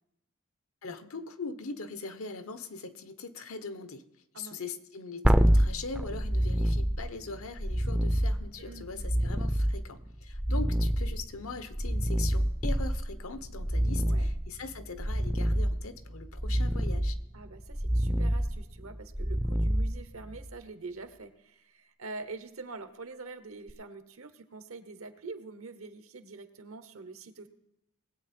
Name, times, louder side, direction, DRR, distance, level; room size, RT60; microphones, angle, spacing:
voice 1, 0.8-4.0 4.3-17.2, left 4 dB, 85° left, 10 dB, 1.0 m, -41 dB
sound 1, 5.2-20.5 23.7-23.8, equal, 5° right, 0.4 m, -28 dB
voice 2, 8.6-9.0 14.0-14.3 17.3-27.5, right 3 dB, 80° right, 9 dB, 1.1 m, -45 dB
20.0 x 8.3 x 4.4 m, 0.85 s
head